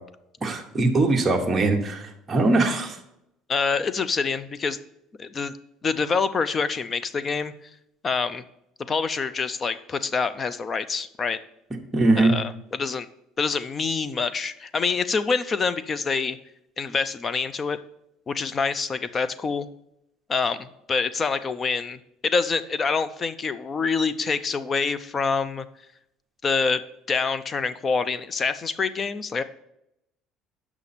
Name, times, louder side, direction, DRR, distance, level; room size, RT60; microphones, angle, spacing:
voice 1, 0.4-3.0 11.9-12.3, right 2 dB, 15° right, 1 dB, 1.0 m, -21 dB
voice 2, 3.5-4.8 5.2-5.5 5.8-7.5 8.0-8.4 8.9-11.4 12.2-13.1 13.4-16.4 16.8-17.8 18.3-19.7 20.3-25.7 26.4-26.8 27.1-29.4, left 5 dB, 25° left, 15 dB, 0.4 m, -26 dB
8.1 x 5.9 x 4.2 m, 0.80 s
cardioid pair, 165°, 0 cm